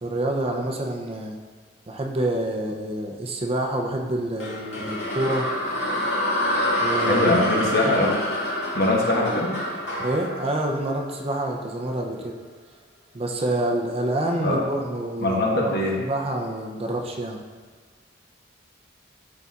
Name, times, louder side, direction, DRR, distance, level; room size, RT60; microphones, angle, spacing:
voice 1, 0.0-1.4 1.9-5.5 6.8-7.3 10.0-12.4 13.1-17.4, right 1 dB, 30° right, 1 dB, 0.5 m, -27 dB
sound 1, 4.4-11.6, equal, 70° left, 1.8 m, -27 dB
voice 2, 7.1-8.2 8.7-9.5 14.4-14.6 15.2-15.9, left 2 dB, 55° left, -2 dB, 1.2 m, -22 dB
11.5 x 4.0 x 2.4 m, 1.5 s
head